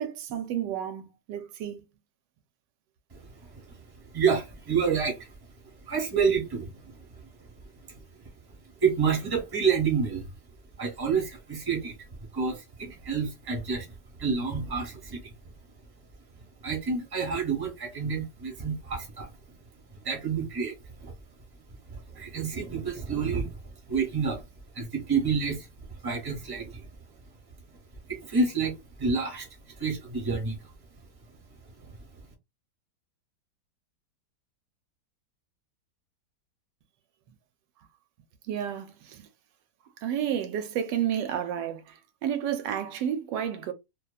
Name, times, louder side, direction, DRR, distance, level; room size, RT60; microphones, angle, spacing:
voice 1, 0.0-1.9 38.4-39.3 40.0-43.7, right 9 dB, 85° right, 1.2 m, -31 dB
voice 2, 3.2-3.8 4.1-5.3 5.9-7.0 7.9-8.0 8.8-10.3 10.8-12.0 12.3-13.9 14.2-15.2 16.6-19.3 20.0-21.1 21.9-23.6 23.9-24.4 24.7-25.7 26.0-26.9 28.1-29.5 29.8-30.6, right 5 dB, 15° right, 0.8 m, -28 dB
2.8 x 2.2 x 2.2 m
omnidirectional pair, 1.8 m